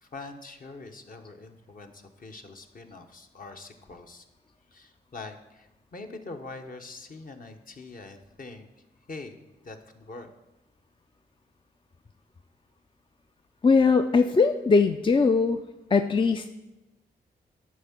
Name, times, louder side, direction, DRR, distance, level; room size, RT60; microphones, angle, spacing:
voice 1, 0.0-4.2 4.7-8.7 9.1-10.3, left 3 dB, 50° left, 5 dB, 1.1 m, -43 dB
voice 2, 13.6-15.6 15.9-16.5, left 4 dB, 25° left, 7 dB, 0.4 m, -21 dB
10.5 x 3.7 x 7.2 m, 1.0 s
cardioid pair, 60°, 18 cm